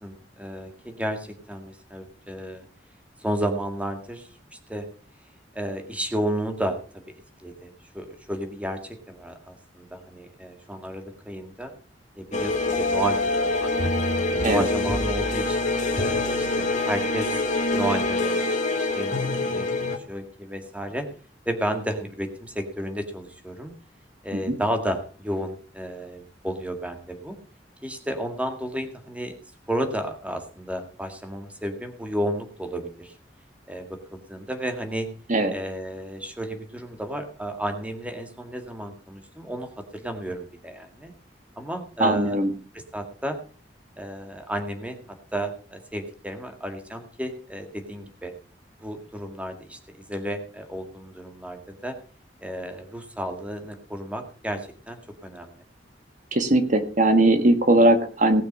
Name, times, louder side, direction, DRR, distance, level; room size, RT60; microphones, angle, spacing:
voice 1, 0.0-2.6 3.2-4.3 4.7-4.9 5.6-7.0 7.4-11.7 12.2-13.9 14.3-21.1 21.5-23.7 24.2-27.4 27.8-29.3 29.7-33.1 33.7-35.1 35.5-41.1 41.6-42.4 42.7-43.4 44.0-45.0 45.3-48.3 48.8-51.9 52.4-55.6, right 1 dB, 10° right, 6 dB, 1.9 m, -32 dB
sound 1, 12.3-20.0, left 2 dB, 45° left, 1.7 m, -25 dB
voice 2, 42.0-42.5 56.3-58.4, right 1 dB, 45° right, 7 dB, 1.6 m, -19 dB
18.5 x 6.5 x 5.4 m, 0.39 s
head